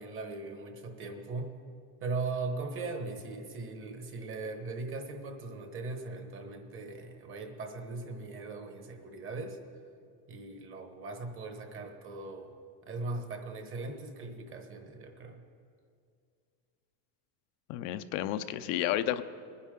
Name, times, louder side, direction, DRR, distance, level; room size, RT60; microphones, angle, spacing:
voice 1, 0.0-1.5 2.0-9.6 10.3-12.5 12.9-15.4, right 3 dB, 30° right, 5 dB, 1.2 m, -39 dB
voice 2, 17.7-19.2, left 12 dB, 80° left, 10 dB, 0.7 m, -31 dB
21.0 x 9.9 x 3.8 m, 2.3 s
cardioid pair, 155°, 40 cm